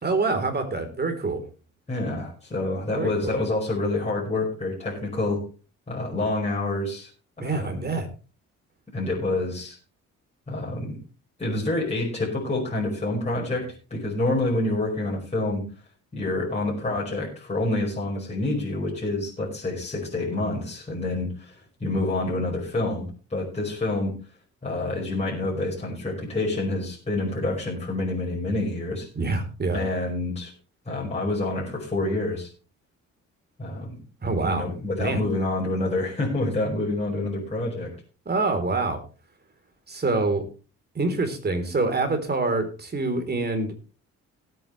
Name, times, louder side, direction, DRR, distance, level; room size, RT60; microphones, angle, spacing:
voice 1, 0.0-1.4 2.9-3.3 7.4-8.1 29.2-29.8 34.2-34.7 35.0-35.2 38.3-39.0 39.9-40.5 41.0-43.8, right 3 dB, 35° right, 7 dB, 3.8 m, -26 dB
voice 2, 1.9-5.4 5.9-7.1 7.4-7.9 8.9-9.8 10.5-11.0 11.4-15.6 16.1-21.5 21.8-24.1 24.6-29.1 29.7-30.5 30.9-32.5 33.6-34.0 34.4-37.9, left 2 dB, 20° left, -4 dB, 5.4 m, -27 dB
18.5 x 9.0 x 3.3 m, 0.34 s
cardioid pair, 90°, 30 cm